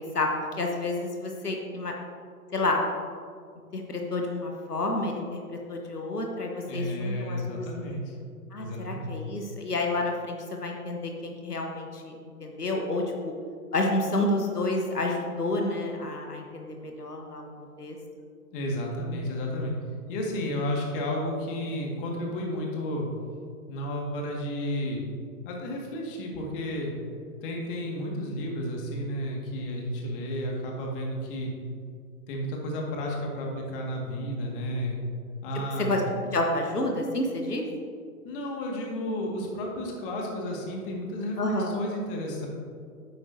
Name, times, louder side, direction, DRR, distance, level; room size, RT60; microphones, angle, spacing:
voice 1, 0.6-1.9 2.5-2.8 3.7-5.4 5.7-7.8 8.5-12.1 12.4-13.3 13.7-18.0 35.8-36.0 36.3-37.7 41.4-41.7, left 2 dB, 90° left, 1 dB, 1.3 m, -29 dB
voice 2, 6.7-8.1 8.6-9.2 18.5-19.7 20.1-23.1 23.7-25.1 25.4-26.9 27.4-31.5 32.3-35.0 35.4-35.9 38.2-42.5, left 1 dB, 35° left, -1 dB, 1.9 m, -32 dB
10.0 x 8.5 x 2.7 m, 2.2 s
figure-of-eight pair, 120°, 45 cm